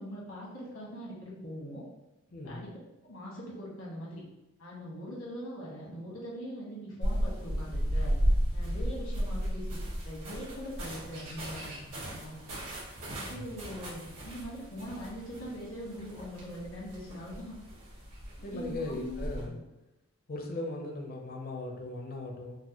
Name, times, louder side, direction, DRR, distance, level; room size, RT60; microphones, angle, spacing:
voice 1, 0.0-1.8 2.4-2.7 3.0-4.2 4.6-8.2 8.5-9.8 10.0-12.4 13.2-17.5 18.4-19.6, equal, 80° left, -5 dB, 1.2 m, -42 dB
voice 2, 2.3-2.6 13.3-13.6 18.4-19.6 20.3-22.6, left 2 dB, 45° left, 1 dB, 0.5 m, -38 dB
sound 1, 7.0-19.4, equal, 85° right, 1.5 m, -34 dB
4.0 x 2.2 x 2.9 m, 0.98 s
head